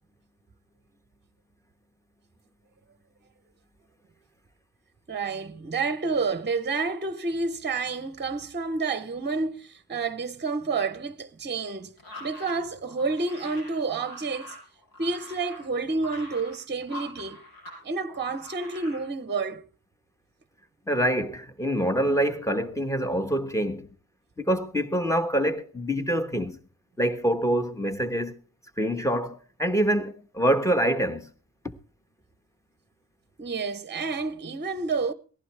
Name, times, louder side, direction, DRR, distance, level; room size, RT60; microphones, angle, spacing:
voice 1, 5.1-11.9 12.2-14.6 15.0-17.4 17.8-19.6 33.4-35.1, right 4 dB, 30° right, 0.9 m, -29 dB
sound 1, 12.0-17.8 18.1-19.0, left 1 dB, 70° left, 7.3 m, -44 dB
voice 2, 20.9-23.9 24.4-26.6 27.0-28.3 28.8-31.3, right 1 dB, 10° left, 1.4 m, -25 dB
19.0 x 15.0 x 3.4 m
wide cardioid pair, 140°, 36 cm